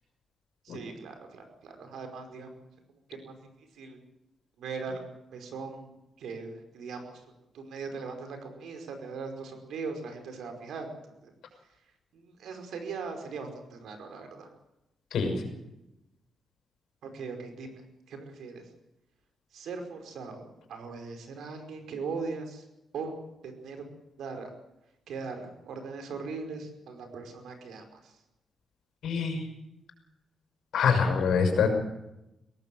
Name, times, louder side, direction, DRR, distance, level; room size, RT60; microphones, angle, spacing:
voice 1, 0.6-2.5 2.9-4.0 4.6-7.2 7.5-10.9 11.2-11.3 12.1-14.5 17.0-17.7 18.1-18.7 19.5-22.7 22.9-23.8 24.2-24.5 25.1-28.1, right 4 dB, 85° right, 5 dB, 5.2 m, -40 dB
voice 2, 15.1-15.4 29.0-29.4 30.7-31.7, left 5 dB, 75° left, 5 dB, 6.1 m, -25 dB
23.0 x 18.0 x 7.8 m, 0.91 s
wide cardioid pair, 160°, 0 cm